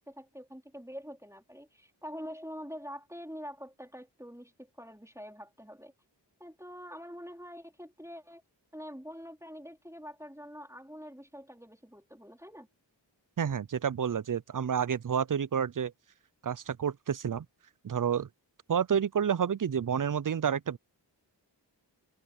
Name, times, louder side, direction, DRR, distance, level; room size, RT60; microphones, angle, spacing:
voice 1, 0.0-5.9 6.4-8.4 8.7-12.7, equal, 5° right, 3.9 m, -45 dB
voice 2, 13.4-15.9 16.4-17.5 17.8-18.3 18.7-20.8, right 7 dB, 50° right, 0.5 m, -29 dB
wide cardioid pair, 45°, 44 cm